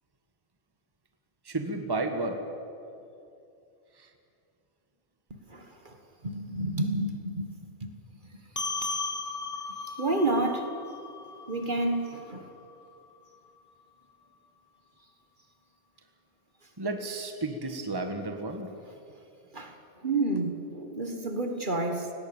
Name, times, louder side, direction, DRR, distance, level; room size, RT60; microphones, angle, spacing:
voice 1, 1.4-2.4 4.0-4.1 16.8-18.7, right 2 dB, 20° right, 5 dB, 1.5 m, -32 dB
voice 2, 5.5-6.0 6.2-7.9 8.8-9.0 9.9-10.7 11.5-12.5 19.5-19.8 20.0-22.1, right 2 dB, 45° right, 5 dB, 1.7 m, -30 dB
sound 1, 8.6-13.3, left 3 dB, 15° left, 1.3 m, -37 dB
18.0 x 18.0 x 8.9 m, 2.6 s
omnidirectional pair, 1.1 m